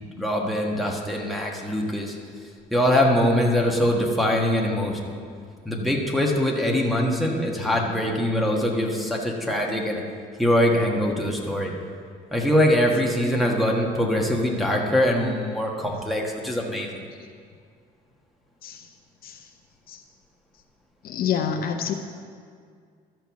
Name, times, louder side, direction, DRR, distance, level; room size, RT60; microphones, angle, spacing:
voice 1, 0.2-2.2 2.7-5.2 5.6-10.0 10.4-11.7 12.3-17.0, left 1 dB, ahead, -2 dB, 1.4 m, -23 dB
voice 2, 21.0-21.9, left 7 dB, 60° left, 5 dB, 0.7 m, -27 dB
12.5 x 4.6 x 7.0 m, 2.1 s
cardioid pair, 110°, 17 cm